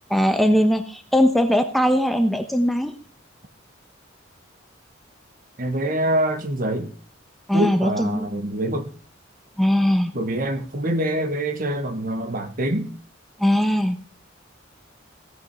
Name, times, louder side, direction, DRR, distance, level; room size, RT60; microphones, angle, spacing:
voice 1, 0.1-2.9 7.5-8.3 9.6-10.1 13.4-14.0, equal, ahead, 0.9 m, -20 dB
voice 2, 5.6-6.9 7.5-8.9 10.1-12.9, right 1 dB, 45° right, 1.4 m, -25 dB
17.0 x 6.2 x 5.4 m
head